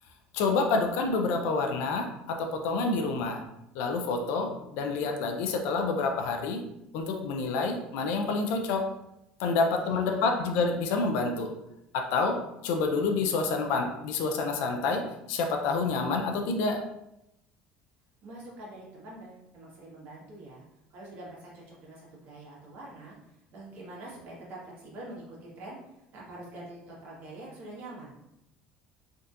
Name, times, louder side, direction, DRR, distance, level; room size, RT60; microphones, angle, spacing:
voice 1, 0.3-3.4 3.7-6.6 6.9-8.9 9.4-11.5 11.9-12.4 12.6-16.8, left 4 dB, 75° left, 3 dB, 0.5 m, -28 dB
voice 2, 9.4-10.3 18.2-20.6 20.9-23.1 23.5-28.1, right 1 dB, 55° right, -5 dB, 1.4 m, -45 dB
3.4 x 2.7 x 2.5 m, 0.85 s
supercardioid pair, 105°, 4 cm